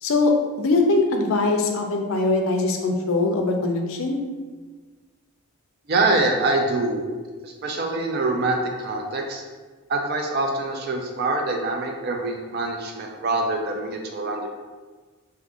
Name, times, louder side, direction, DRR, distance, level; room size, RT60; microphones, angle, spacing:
voice 1, 0.0-4.2, left 3 dB, 65° left, 3 dB, 0.4 m, -22 dB
voice 2, 5.9-7.1 7.4-9.4 9.9-14.5, right 2 dB, 45° right, 3 dB, 0.3 m, -25 dB
2.7 x 2.4 x 3.6 m, 1.4 s
head